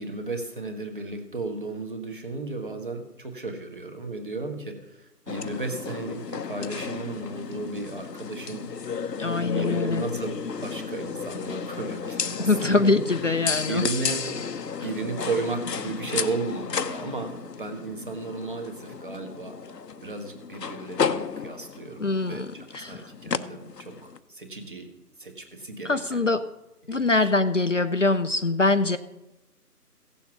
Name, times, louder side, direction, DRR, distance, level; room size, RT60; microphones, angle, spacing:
voice 1, 0.0-8.7 9.5-13.0 13.7-14.3 14.8-19.6 20.0-24.9 25.2-26.2 26.8-27.3, right 3 dB, 30° right, 5 dB, 1.5 m, -34 dB
sound 1, 5.3-24.2, left 6 dB, 85° left, 0.9 m, -33 dB
voice 2, 9.2-10.0 12.4-13.9 22.0-23.1 25.8-26.5 26.9-29.0, left 3 dB, 50° left, 9 dB, 0.6 m, -23 dB
16.0 x 7.2 x 5.9 m, 0.97 s
figure-of-eight pair, 170°, 48 cm